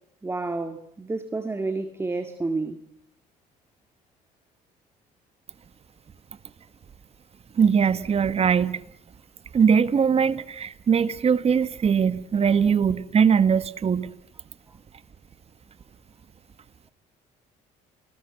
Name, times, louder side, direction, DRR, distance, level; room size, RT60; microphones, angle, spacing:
voice 1, 0.2-2.8, right 3 dB, 15° right, 2.0 m, -30 dB
voice 2, 7.6-8.8 9.5-14.1, right 6 dB, 35° right, 1.6 m, -21 dB
29.0 x 20.5 x 7.9 m
cardioid pair, 110°, 17 cm